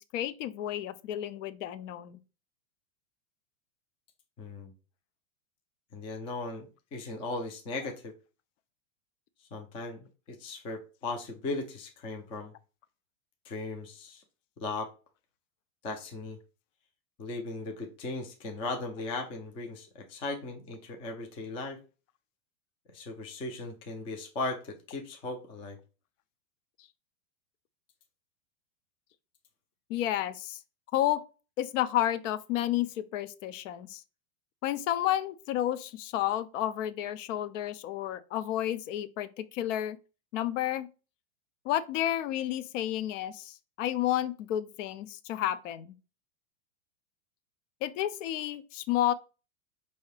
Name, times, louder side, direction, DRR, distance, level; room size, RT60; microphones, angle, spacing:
voice 1, 0.0-2.2 29.9-30.6 30.9-31.2 31.6-34.0 34.6-40.0 40.3-40.9 41.7-45.9 47.8-49.1, left 12 dB, 65° left, 0.6 m, -31 dB
voice 2, 4.4-4.7 5.9-8.1 9.5-12.5 13.5-14.2 14.6-14.9 15.8-16.4 17.2-21.8 22.9-25.8, left 3 dB, 15° left, 0.3 m, -37 dB
4.6 x 2.8 x 3.2 m
supercardioid pair, 135°, 41 cm